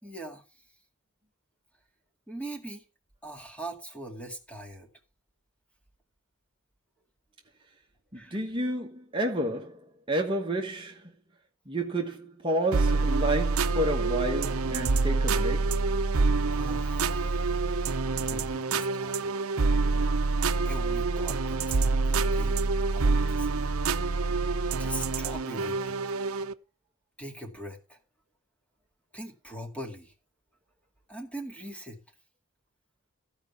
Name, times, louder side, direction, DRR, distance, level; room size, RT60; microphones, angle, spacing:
voice 1, 0.0-0.4 2.3-2.9 3.2-4.9 8.1-8.4 16.5-17.9 18.1-19.3 20.6-23.7 24.7-26.0 27.2-28.0 29.1-30.1 31.1-32.0, right 1 dB, 5° left, 2.1 m, -42 dB
voice 2, 8.1-11.0 11.7-15.7, right 1 dB, 25° right, 1.3 m, -30 dB
sound 1, 12.7-26.5, right 3 dB, 80° right, 0.7 m, -26 dB
15.0 x 5.2 x 7.0 m
head